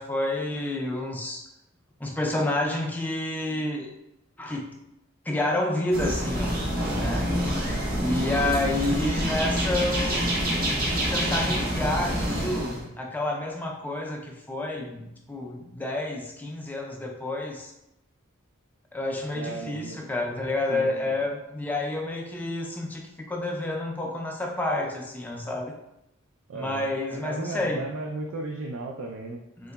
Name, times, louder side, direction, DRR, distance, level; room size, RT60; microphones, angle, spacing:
voice 1, 0.0-1.5 2.0-3.9 4.4-4.8 5.3-6.6 6.9-7.3 8.0-10.3 11.1-17.7 18.9-25.7 26.5-27.8 29.6-29.7, left 2 dB, 10° left, 0 dB, 0.3 m, -29 dB
sound 1, 5.9-12.8, equal, 45° right, 0.8 m, -27 dB
voice 2, 19.3-20.1 20.7-21.2 26.5-26.9 27.2-29.4, right 3 dB, 75° right, 1 dB, 0.3 m, -35 dB
3.8 x 2.8 x 2.2 m, 0.88 s
head